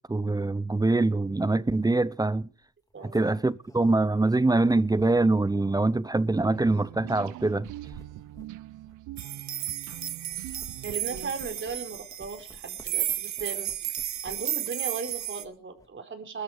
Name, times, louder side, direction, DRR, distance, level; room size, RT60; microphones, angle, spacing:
voice 1, 0.1-2.5 3.1-7.7, right 2 dB, 15° right, 0.7 m, -24 dB
sound 1, 1.2-1.3 2.6-5.5 6.2-6.3 7.4-10.0 10.3-14.7 15.0-15.9, left 1 dB, 10° left, 3.1 m, -54 dB
sound 2, 6.5-11.7, right 15 dB, 85° right, 0.7 m, -43 dB
sound 3, 9.2-15.4, right 11 dB, 65° right, 1.4 m, -33 dB
voice 2, 10.8-16.4, right 5 dB, 40° right, 4.6 m, -37 dB
21.0 x 13.5 x 5.2 m
cardioid pair, 90°, 30 cm